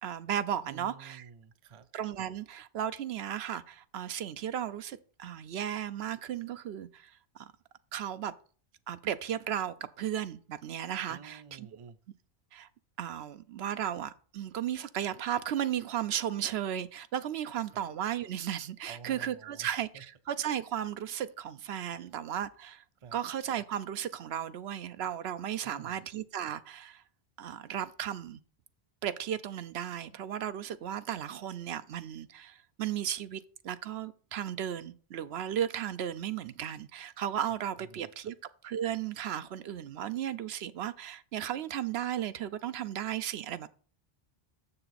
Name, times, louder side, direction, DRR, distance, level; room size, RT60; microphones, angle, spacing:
voice 1, 0.0-1.2 1.9-7.5 7.9-8.3 8.9-11.7 12.5-12.7 13.0-22.8 23.1-27.0 27.4-28.4 29.0-38.3 38.6-43.7, right 10 dB, 80° right, 0.9 m, -35 dB
voice 2, 0.7-1.9 11.1-12.0 17.7-17.8 18.9-20.0 21.9-22.1 23.0-23.2 25.6-26.0 37.8-38.3, right 6 dB, 40° right, 0.5 m, -51 dB
6.9 x 6.8 x 4.1 m
omnidirectional pair, 1.1 m